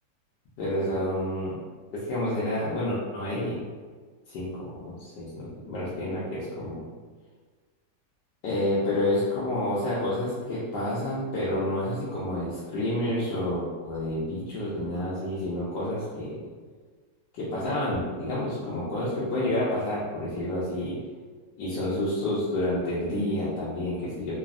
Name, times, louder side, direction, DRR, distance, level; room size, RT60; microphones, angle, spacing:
voice 1, 0.6-1.5 2.0-3.6 4.3-6.9 8.4-16.4 17.3-21.0 21.6-24.4, left 1 dB, 90° left, -8 dB, 1.3 m, -29 dB
3.4 x 2.0 x 2.4 m, 1.5 s
omnidirectional pair, 1.9 m